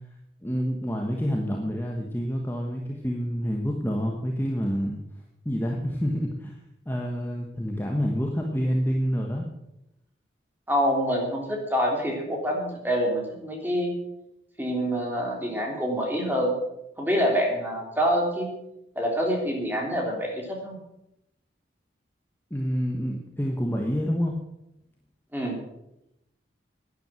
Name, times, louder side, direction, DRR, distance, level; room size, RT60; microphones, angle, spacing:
voice 1, 0.4-5.0 5.4-6.5 6.9-9.4 22.5-24.3, equal, 10° left, 0 dB, 1.3 m, -28 dB
voice 2, 10.7-13.9 14.6-16.5 17.0-18.5 18.9-20.8 25.3-25.5, equal, 10° right, 0 dB, 3.3 m, -26 dB
11.5 x 10.5 x 7.7 m, 0.87 s
head